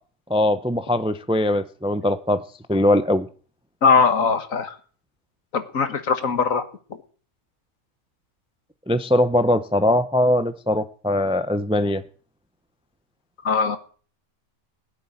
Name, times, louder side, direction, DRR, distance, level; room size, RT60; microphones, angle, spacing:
voice 1, 0.3-2.4 2.7-3.3 8.9-12.0, left 1 dB, 5° right, 0.6 m, -21 dB
voice 2, 3.8-4.8 5.5-6.7 13.4-13.8, left 5 dB, 65° left, 1.9 m, -20 dB
17.5 x 7.5 x 9.9 m
omnidirectional pair, 1.5 m